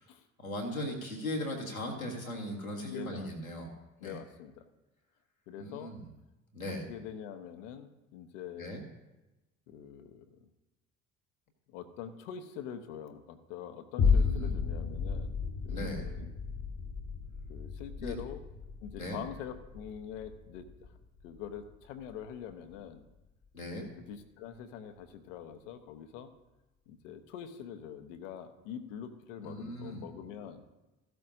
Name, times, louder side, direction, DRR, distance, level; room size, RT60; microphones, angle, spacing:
voice 1, 0.4-3.7 4.0-4.2 5.6-6.0 6.5-6.9 8.6-8.8 14.0-14.5 15.7-16.1 18.0-18.1 19.0-19.2 23.5-23.8 29.4-30.0, left 1 dB, 90° left, -1 dB, 1.6 m, -38 dB
voice 2, 2.9-3.3 4.0-4.7 5.5-5.9 6.7-8.7 9.7-10.5 11.7-15.4 15.6-16.3 17.5-18.4 18.8-21.0 21.2-23.0 23.8-26.3 26.9-30.7, left 8 dB, 65° left, 9 dB, 1.0 m, -44 dB
sound 1, 14.0-22.5 23.0-23.1, left 5 dB, 40° left, 1.3 m, -33 dB
14.5 x 12.5 x 2.6 m, 1.0 s
figure-of-eight pair, 55°, 41 cm